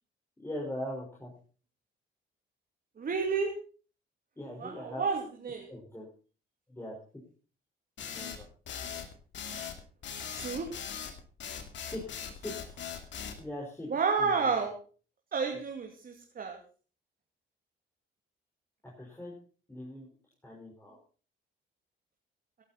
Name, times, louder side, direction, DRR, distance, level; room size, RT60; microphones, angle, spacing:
voice 1, 0.4-1.3 4.4-5.0 5.7-6.1 6.7-6.9 8.0-8.5 11.9-12.8 13.4-13.9 14.2-14.5 18.8-19.3 19.7-20.1 20.4-21.0, left 1 dB, 10° left, -3 dB, 5.0 m, -41 dB
voice 2, 3.0-3.5 4.6-5.7 10.4-10.7 13.9-14.7 15.3-16.6, right 5 dB, 50° right, 1 dB, 2.8 m, -30 dB
sound 1, 8.0-13.4, left 8 dB, 65° left, 2.5 m, -40 dB
16.5 x 11.5 x 4.2 m, 0.39 s
cardioid pair, 90°, 20 cm